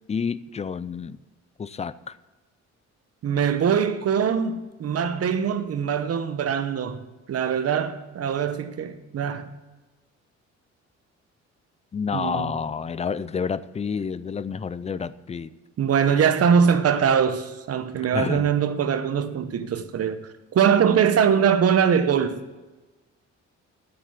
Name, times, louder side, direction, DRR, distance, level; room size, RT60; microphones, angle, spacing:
voice 1, 0.1-1.2 1.6-2.1 11.9-15.5 18.1-18.5, left 6 dB, 20° left, 0.4 m, -29 dB
voice 2, 3.2-7.0 7.3-9.5 12.1-12.5 15.8-20.2 20.5-22.4, right 7 dB, 55° right, 0.9 m, -22 dB
8.8 x 7.8 x 8.2 m
cardioid pair, 110°, 29 cm